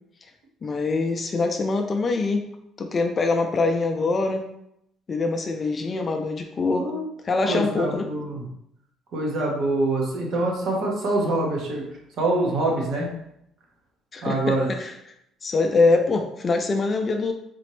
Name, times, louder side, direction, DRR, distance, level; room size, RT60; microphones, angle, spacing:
voice 1, 0.6-2.5 2.8-4.5 5.1-6.9 7.2-8.1 14.1-14.9 15.4-17.3, left 3 dB, 30° left, 4 dB, 0.4 m, -24 dB
voice 2, 6.6-7.0 7.4-8.4 9.1-11.8 12.2-13.1 14.2-14.7, right 2 dB, 60° right, -1 dB, 1.2 m, -25 dB
4.1 x 3.0 x 3.1 m, 0.77 s
cardioid pair, 140°, 0 cm